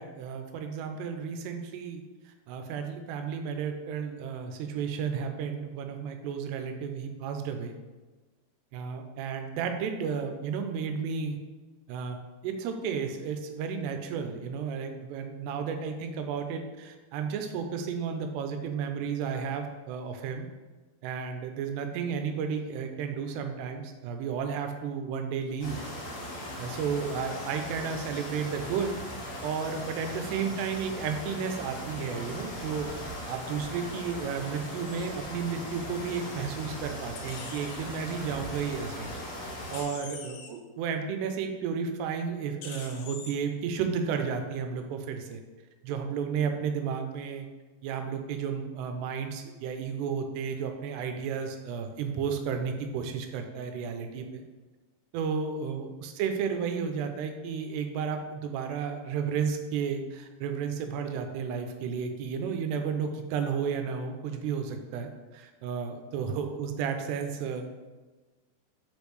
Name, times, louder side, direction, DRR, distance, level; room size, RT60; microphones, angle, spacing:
voice 1, 0.0-7.7 8.7-11.4 11.9-20.4 21.0-25.8 26.6-28.9 29.4-39.1 39.7-45.4 45.8-47.5 47.8-54.4 55.1-67.7, right 6 dB, 90° right, 5 dB, 2.8 m, -33 dB
sound 1, 25.6-39.8, left 1 dB, 65° left, 1.6 m, -39 dB
sound 2, 37.2-37.8 39.7-40.5 42.6-43.3, left 5 dB, 80° left, 2.8 m, -43 dB
6.1 x 5.2 x 3.2 m, 1.2 s
omnidirectional pair, 4.8 m